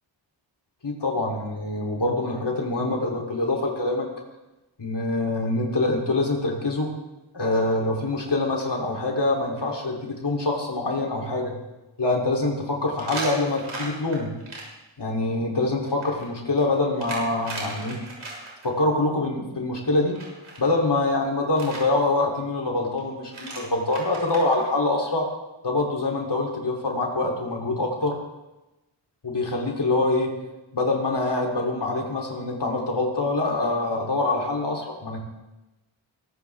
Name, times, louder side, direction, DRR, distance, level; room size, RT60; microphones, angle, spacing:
voice 1, 0.8-4.1 4.8-6.9 7.3-11.5 12.0-14.3 15.0-18.0 18.6-20.2 20.6-25.3 25.6-28.2 29.2-30.3 30.7-35.2, left 2 dB, 55° left, 0 dB, 3.4 m, -25 dB
sound 1, 8.0-8.3 8.6-8.7 9.2-9.3 9.6-9.7 13.0-14.6 15.8-18.7 20.1-20.7 21.5-21.8 23.0-23.1 23.3-24.6, right 2 dB, 75° right, 6.1 m, -37 dB
23.5 x 14.0 x 3.6 m, 1.0 s
cardioid pair, 55°, 48 cm